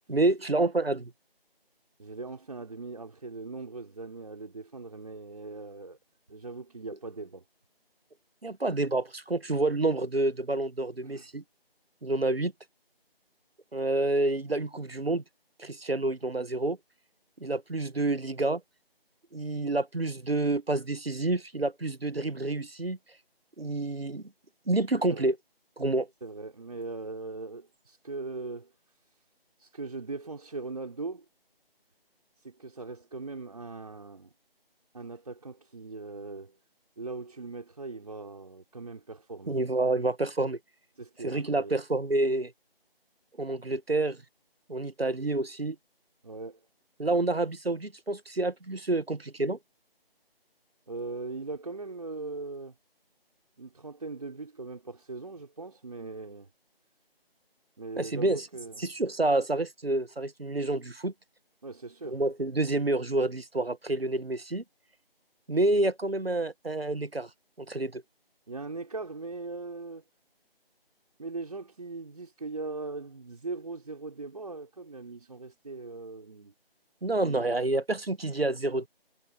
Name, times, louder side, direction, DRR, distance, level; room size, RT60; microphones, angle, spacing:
voice 1, 0.1-1.1 8.4-11.4 12.0-12.5 13.7-15.2 15.6-16.8 17.4-18.6 19.3-23.0 23.6-24.2 24.7-25.4 25.8-26.1 39.5-40.6 41.2-42.5 43.4-44.2 44.7-45.8 47.0-49.6 58.0-58.5 58.8-61.1 62.0-64.6 65.5-67.3 67.6-68.0 77.0-78.9, right 2 dB, 75° right, 1.6 m, -28 dB
voice 2, 2.0-6.0 6.3-7.4 11.0-11.3 25.1-25.3 26.2-28.7 29.6-31.2 32.4-34.3 34.9-36.6 37.0-39.6 41.0-41.8 46.2-46.7 50.9-52.7 53.6-56.5 57.8-58.9 61.6-62.2 68.5-70.0 71.2-76.5 77.2-77.5, right 3 dB, 40° right, 4.5 m, -40 dB
figure-of-eight pair, 165°, 30 cm